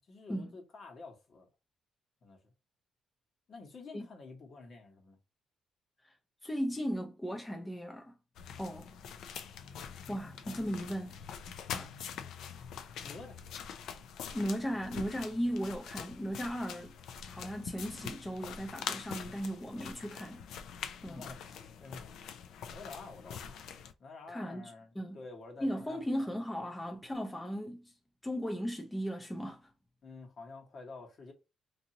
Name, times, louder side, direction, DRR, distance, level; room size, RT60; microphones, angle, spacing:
voice 1, 0.1-1.5 2.2-2.4 3.5-5.2 13.0-13.4 21.1-22.2 22.7-23.7 24.0-26.3 30.0-31.3, left 3 dB, 55° left, 1.2 m, -49 dB
voice 2, 6.4-8.2 8.6-8.9 10.1-11.2 11.7-11.9 14.3-16.9 17.2-20.5 21.0-21.2 24.3-25.2 25.6-27.9 28.2-29.7, equal, 10° left, 0.5 m, -37 dB
sound 1, 8.4-23.9, left 7 dB, 80° left, 0.4 m, -44 dB
2.8 x 2.6 x 2.7 m
cardioid pair, 90°, 0 cm